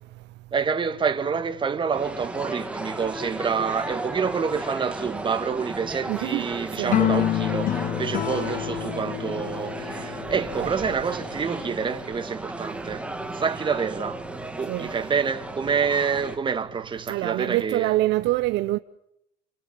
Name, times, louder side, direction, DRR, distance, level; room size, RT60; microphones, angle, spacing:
voice 1, 0.5-14.3 14.5-18.0, right 6 dB, 25° right, 1.9 m, -27 dB
sound 1, 1.9-16.4, right 2 dB, 5° right, 2.0 m, -35 dB
voice 2, 6.1-6.5 6.8-7.0 10.6-10.7 14.7-14.9 17.1-18.8, right 17 dB, 60° right, 0.8 m, -25 dB
sound 2, 6.9-11.3, left 13 dB, 45° left, 0.9 m, -28 dB
29.0 x 25.5 x 5.6 m
cardioid pair, 125°, 20 cm